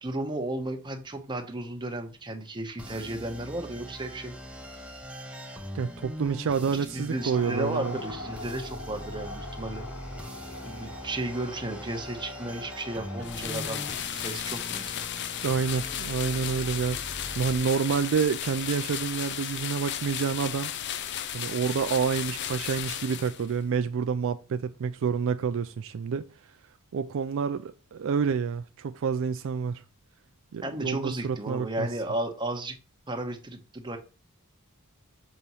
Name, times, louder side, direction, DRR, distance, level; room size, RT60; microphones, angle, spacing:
voice 1, 0.0-4.4 6.7-9.9 10.6-13.9 14.1-15.0 30.6-32.7 33.1-34.0, right 1 dB, 20° right, 1.0 m, -34 dB
sound 1, 2.8-17.6, equal, 5° right, 0.8 m, -42 dB
voice 2, 5.7-8.0 15.4-20.7 21.3-26.3 26.9-29.8 30.5-31.9, right 6 dB, 60° right, 0.4 m, -28 dB
sound 2, 7.1-14.3, left 2 dB, 85° left, 1.3 m, -42 dB
sound 3, 13.2-23.6, left 10 dB, 55° left, 0.5 m, -34 dB
6.9 x 3.0 x 5.4 m
head